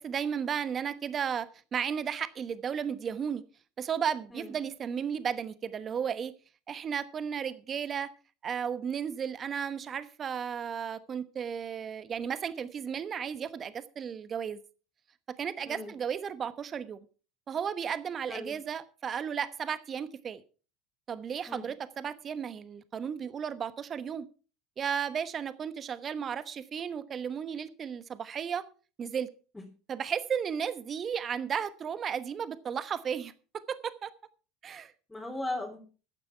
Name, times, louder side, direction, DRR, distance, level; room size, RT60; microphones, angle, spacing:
voice 1, 0.0-3.4 3.8-6.3 6.7-8.1 8.4-14.6 15.4-17.0 17.5-20.4 21.1-24.3 24.8-28.6 29.0-29.3 29.9-33.3 33.7-34.1 34.6-34.9, right 7 dB, 40° right, 14 dB, 1.1 m, -34 dB
voice 2, 35.1-35.8, left 1 dB, 10° left, 0 dB, 3.4 m, -37 dB
14.0 x 9.7 x 4.6 m, 0.36 s
hypercardioid pair, 80°, 0 cm